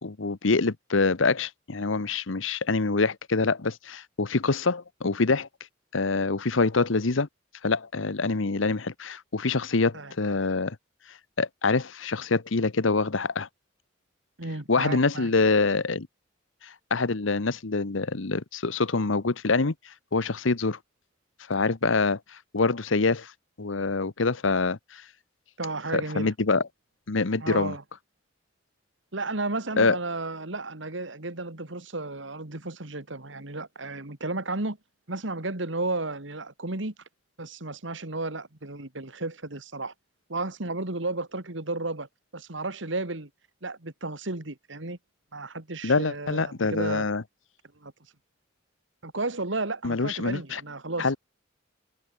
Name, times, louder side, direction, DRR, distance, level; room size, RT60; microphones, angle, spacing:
voice 1, 0.0-5.5 5.9-7.3 7.6-10.8 11.4-13.5 14.7-16.1 16.6-19.7 20.1-20.8 21.5-22.2 22.5-23.3 23.6-25.0 25.9-26.6 27.1-27.8 29.8-30.0 45.8-47.2 49.8-50.6 51.0-51.2, left 3 dB, 85° left, 1.0 m, -25 dB
voice 2, 14.4-15.3 25.6-26.3 27.4-27.8 29.1-34.8 35.1-36.9 37.4-39.9 40.3-42.1 42.3-43.3 43.6-45.0 45.3-47.1 47.8-47.9 49.0-51.2, right 2 dB, 75° right, 2.5 m, -33 dB
head